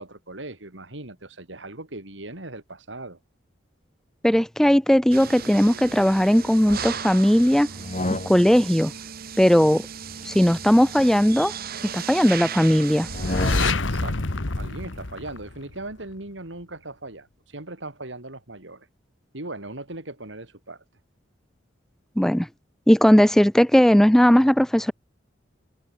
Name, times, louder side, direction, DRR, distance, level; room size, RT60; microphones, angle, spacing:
voice 1, 0.0-3.2 13.8-14.2 14.6-18.9 19.3-20.8, right 2 dB, 70° right, 4.1 m, -38 dB
voice 2, 4.2-7.7 8.3-8.9 9.4-9.8 10.3-11.5 11.9-13.1 22.2-22.5 22.9-24.9, equal, ahead, 0.3 m, -18 dB
sound 1, 5.1-13.7, right 7 dB, 55° right, 1.4 m, -36 dB
sound 2, 7.7-8.7 10.0-11.7 13.0-14.0, left 1 dB, 40° left, 5.7 m, -33 dB
sound 3, 13.1-15.9, left 3 dB, 80° left, 1.6 m, -26 dB
head